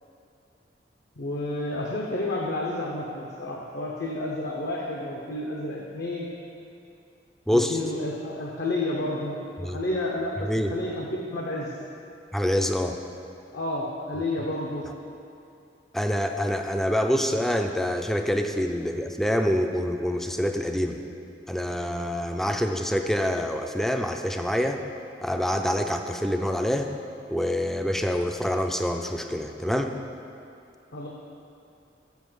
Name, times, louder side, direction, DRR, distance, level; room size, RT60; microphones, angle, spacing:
voice 1, 1.2-6.3 7.5-11.7 13.5-14.9 30.9-31.1, left 1 dB, 60° left, -2 dB, 0.8 m, -30 dB
voice 2, 7.5-7.8 9.6-9.8 10.4-10.7 12.3-13.0 15.9-21.0 21.5-24.8 25.2-26.9 27.3-30.0, equal, ahead, 5 dB, 0.4 m, -26 dB
7.1 x 5.8 x 6.1 m, 2.7 s
head